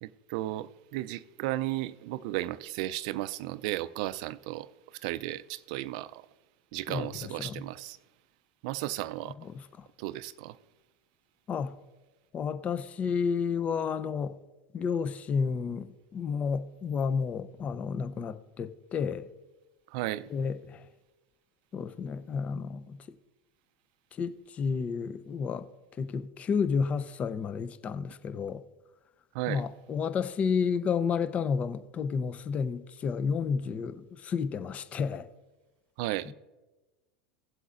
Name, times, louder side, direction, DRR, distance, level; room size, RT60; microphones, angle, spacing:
voice 1, 0.0-6.3 6.7-8.0 8.6-9.3 10.0-10.6 19.9-20.3 29.3-29.7 36.0-36.3, right 16 dB, 65° right, 0.4 m, -34 dB
voice 2, 9.4-9.9 11.5-11.7 12.3-14.3 14.7-19.3 20.3-20.8 21.7-23.0 24.2-25.7 26.0-28.6 29.5-35.3, left 6 dB, 35° left, 0.6 m, -31 dB
16.5 x 7.9 x 2.5 m
hypercardioid pair, 95°, 4 cm